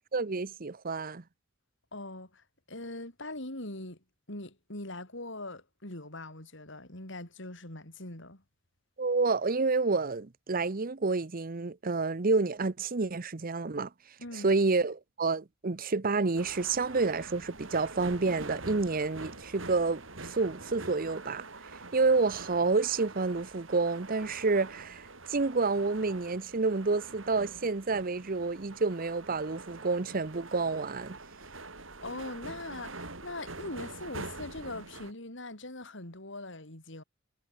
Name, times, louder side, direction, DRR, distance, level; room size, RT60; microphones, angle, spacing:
voice 1, 0.1-1.2 9.0-13.9 14.3-21.5 21.9-31.2, right 3 dB, 45° right, 0.8 m, -29 dB
voice 2, 1.9-4.0 4.3-8.4 14.2-14.5 32.0-37.0, left 2 dB, 65° left, 5.5 m, -41 dB
sound 1, 16.4-35.1, right 3 dB, 80° right, 6.5 m, -45 dB
head